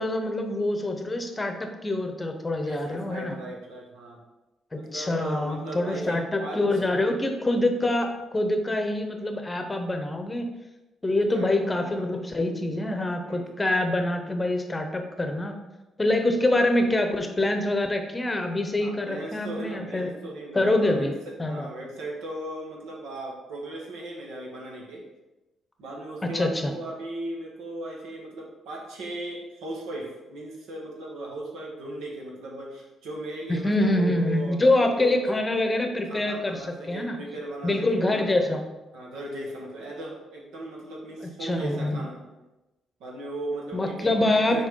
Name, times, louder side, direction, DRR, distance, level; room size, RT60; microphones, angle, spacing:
voice 1, 0.0-3.4 4.7-10.5 11.0-15.5 16.0-20.1 20.5-21.1 21.4-21.7 26.2-26.7 33.5-37.2 37.6-38.6 41.2-42.0 43.7-44.7, left 2 dB, 20° left, 5 dB, 0.8 m, -25 dB
voice 2, 2.6-4.2 4.7-6.6 11.3-12.1 13.2-13.5 18.8-21.1 21.4-25.0 25.8-35.2 36.1-38.4 38.9-42.2 43.0-44.7, right 2 dB, 85° right, -2 dB, 1.6 m, -37 dB
6.1 x 4.4 x 3.8 m, 1.0 s
cardioid pair, 90°, 0 cm